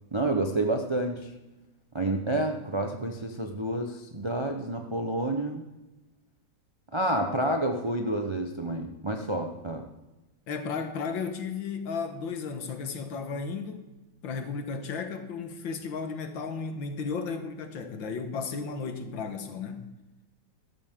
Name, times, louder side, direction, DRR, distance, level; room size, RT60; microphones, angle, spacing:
voice 1, 0.1-1.3 1.9-5.6 6.9-9.8, right 1 dB, 45° right, 4 dB, 0.3 m, -29 dB
voice 2, 10.5-13.9 14.2-19.9, left 5 dB, 80° left, 7 dB, 2.0 m, -34 dB
13.5 x 12.5 x 3.7 m, 1.1 s
omnidirectional pair, 2.1 m